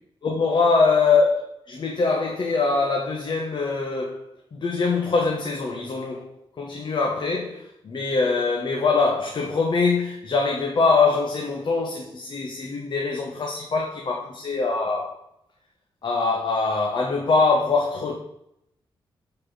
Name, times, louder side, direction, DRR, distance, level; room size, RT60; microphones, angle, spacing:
voice 1, 0.2-4.2 4.5-15.1 16.0-18.2, left 4 dB, 55° left, 0 dB, 1.4 m, -23 dB
7.7 x 4.8 x 6.3 m, 0.80 s
cardioid pair, 95°, 9 cm